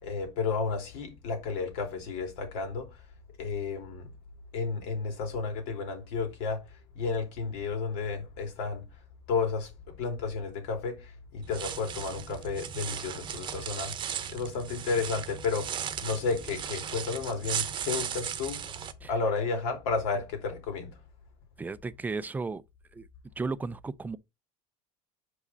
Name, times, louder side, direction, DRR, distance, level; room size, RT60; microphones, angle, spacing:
voice 1, 0.0-3.0 3.4-4.1 4.5-8.8 9.3-18.6 19.1-21.0, left 4 dB, 75° left, 2.9 m, -32 dB
sound 1, 11.4-18.9, right 8 dB, 35° right, 0.9 m, -36 dB
voice 2, 21.6-22.6 22.9-23.1 23.4-24.2, right 4 dB, 10° right, 0.4 m, -34 dB
6.5 x 4.9 x 4.1 m
supercardioid pair, 130°, 14 cm